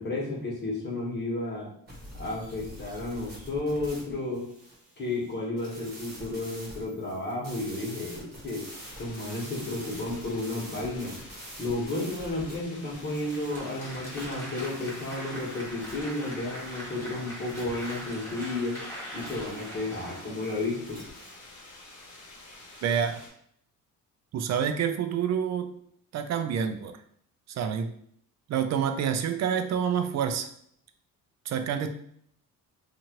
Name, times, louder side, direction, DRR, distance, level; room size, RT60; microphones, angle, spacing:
voice 1, 0.0-1.7 2.2-4.5 5.0-8.7 9.0-11.2 11.6-18.8 19.1-21.0, left 2 dB, 30° left, -4 dB, 1.3 m, -32 dB
sound 1, 1.9-21.4, right 1 dB, 30° right, 1.2 m, -47 dB
sound 2, 8.7-23.3, left 2 dB, 60° left, 1.0 m, -49 dB
Applause, 13.0-21.1, equal, 5° left, 1.2 m, -42 dB
voice 2, 22.8-23.2 24.3-25.7 26.1-26.9 27.6-27.9 28.5-30.5 31.5-31.9, right 8 dB, 55° right, 8 dB, 0.5 m, -27 dB
2.7 x 2.5 x 2.9 m, 0.66 s
cardioid pair, 100°, 33 cm